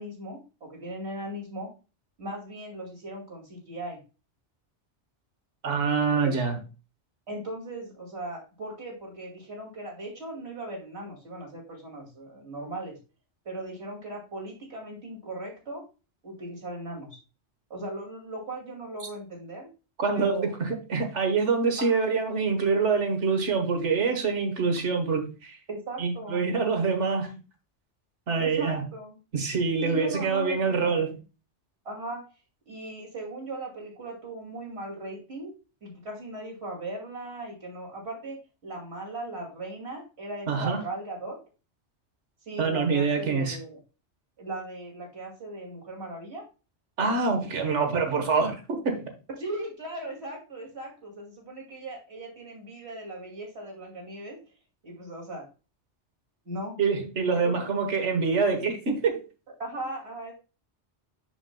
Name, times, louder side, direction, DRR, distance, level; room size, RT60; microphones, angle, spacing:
voice 1, 0.0-1.7 2.2-4.0 6.2-6.3 7.3-13.0 13.4-15.8 16.2-17.2 17.7-19.7 20.1-20.5 21.8-22.0 25.7-26.4 28.4-29.2 29.8-31.0 31.8-32.2 32.7-35.5 35.8-41.4 42.5-43.8 44.4-46.4 49.4-54.4 54.8-55.5 56.4-56.8 57.3-57.7 59.6-60.3, right 2 dB, 70° right, -1 dB, 2.7 m, -38 dB
voice 2, 5.6-6.6 20.0-25.6 26.0-27.4 28.3-28.8 29.3-31.1 40.5-40.8 42.6-43.6 47.0-49.1 56.8-59.2, right 4 dB, 85° right, 5 dB, 1.6 m, -25 dB
6.9 x 6.8 x 2.2 m, 0.32 s
omnidirectional pair, 1.2 m